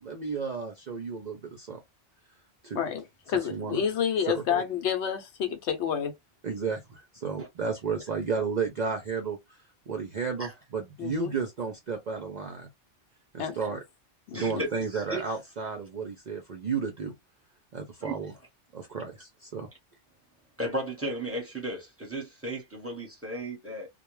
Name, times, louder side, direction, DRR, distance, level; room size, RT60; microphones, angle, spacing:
voice 1, 0.0-1.8 2.6-2.8 3.3-3.8 4.3-4.6 6.4-9.4 9.9-12.7 13.3-13.8 14.3-17.1 17.7-18.3 18.7-19.7, right 5 dB, 50° right, 0.5 m, -33 dB
voice 2, 3.3-6.1 11.0-11.3 13.4-13.5 14.3-14.6, left 8 dB, 75° left, 0.9 m, -29 dB
voice 3, 14.3-15.2 18.0-18.2 20.6-23.9, right 1 dB, 15° right, 0.9 m, -35 dB
2.3 x 2.1 x 3.0 m
omnidirectional pair, 1.2 m